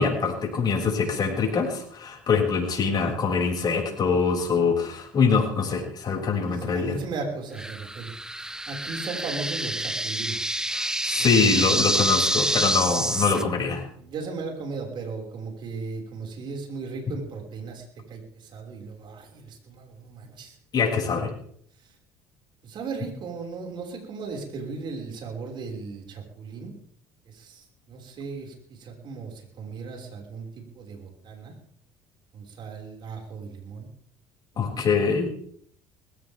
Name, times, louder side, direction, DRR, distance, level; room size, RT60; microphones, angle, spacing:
voice 1, 0.0-7.0 10.7-13.8 17.1-17.2 20.7-21.3 34.6-35.3, left 5 dB, 45° left, 0 dB, 6.8 m, -24 dB
voice 2, 6.4-10.6 11.2-11.8 13.2-13.6 13.9-20.6 22.6-26.7 27.3-31.5 32.3-33.9 34.5-34.8, right 4 dB, 55° right, 1 dB, 5.7 m, -37 dB
sound 1, 7.6-13.4, right 1 dB, 5° right, 1.1 m, -27 dB
20.5 x 17.0 x 3.7 m, 0.62 s
supercardioid pair, 80°, 10 cm